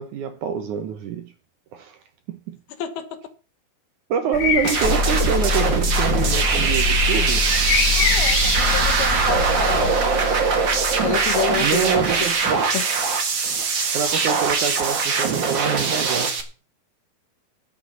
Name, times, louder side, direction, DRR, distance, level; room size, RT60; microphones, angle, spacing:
voice 1, 0.0-1.3 1.7-2.0 2.3-2.6 4.1-7.5 11.6-12.7 13.9-16.4, right 7 dB, 70° right, 2.0 m, -26 dB
voice 2, 2.8-3.2 7.9-10.4 11.0-12.3 12.7-12.8, left 10 dB, 80° left, 3.4 m, -29 dB
sound 1, 4.3-9.9, left 7 dB, 60° left, 2.5 m, -26 dB
sound 2, 4.6-16.4, right 5 dB, 50° right, 1.5 m, -22 dB
sound 3, 4.8-12.4, equal, 10° right, 1.5 m, -26 dB
11.5 x 6.7 x 8.3 m
omnidirectional pair, 4.5 m